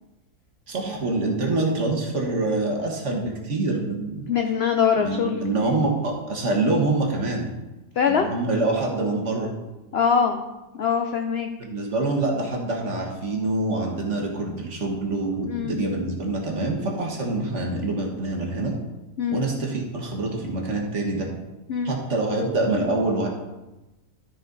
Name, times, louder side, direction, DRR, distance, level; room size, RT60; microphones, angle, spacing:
voice 1, 0.7-4.3 5.0-7.5 8.1-9.5 11.6-18.7 19.3-21.3 21.8-23.3, right 2 dB, 45° right, 0 dB, 1.7 m, -25 dB
voice 2, 4.3-5.8 8.0-8.3 9.9-10.4 10.8-11.5 15.4-15.7 19.2-19.4 21.7-21.9, left 7 dB, 70° left, 4 dB, 0.6 m, -23 dB
13.0 x 5.2 x 3.9 m, 1.0 s
omnidirectional pair, 1.8 m